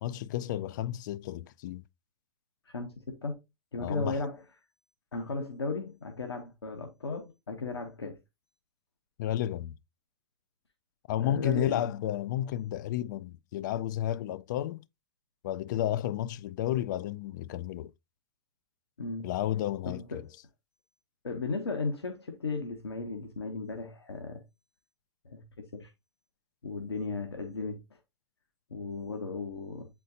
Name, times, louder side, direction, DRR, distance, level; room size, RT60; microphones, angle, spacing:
voice 1, 0.0-1.8 3.8-4.2 9.2-9.8 11.1-14.8 15.4-17.9 19.2-20.3, left 12 dB, 45° left, 0.4 m, -32 dB
voice 2, 2.7-3.4 3.7-4.4 5.1-8.2 11.2-11.8 19.0-19.3 19.8-20.2 21.2-24.4 25.2-25.9 26.6-27.8 28.7-29.9, left 3 dB, 75° left, 1.1 m, -35 dB
8.3 x 4.4 x 2.7 m
figure-of-eight pair, 105°, 13 cm